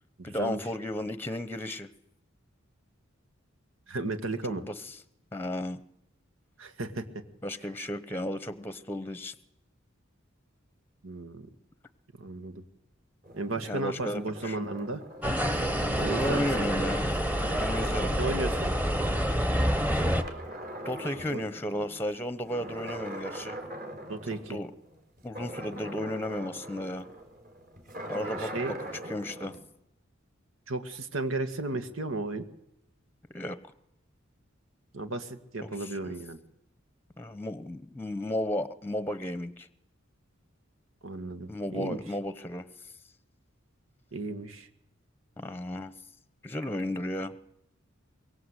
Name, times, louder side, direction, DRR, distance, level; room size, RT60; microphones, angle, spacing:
voice 1, 0.2-1.9 4.5-4.7 5.3-5.8 7.4-9.3 13.6-14.6 16.0-17.1 17.6-18.2 20.8-23.6 24.5-24.7 25.2-27.1 28.1-28.5 29.1-29.5 33.3-33.6 35.6-35.9 37.2-39.7 41.5-42.6 45.4-45.9 46.4-47.3, left 1 dB, 10° left, 13 dB, 0.9 m, -34 dB
voice 2, 3.9-4.6 6.6-7.2 11.0-11.5 12.2-12.6 13.3-15.0 16.0-16.7 18.2-18.7 21.3-21.4 24.1-24.6 28.4-28.7 30.7-32.5 34.9-36.4 41.0-42.0 44.1-44.7, right 2 dB, 80° right, 8 dB, 2.0 m, -34 dB
sound 1, 13.2-19.7 19.9-22.0 22.4-29.6, right 1 dB, 45° right, 4.7 m, -41 dB
sound 2, 15.2-20.2, equal, 10° right, 1.3 m, -27 dB
23.5 x 23.0 x 8.3 m, 0.79 s
head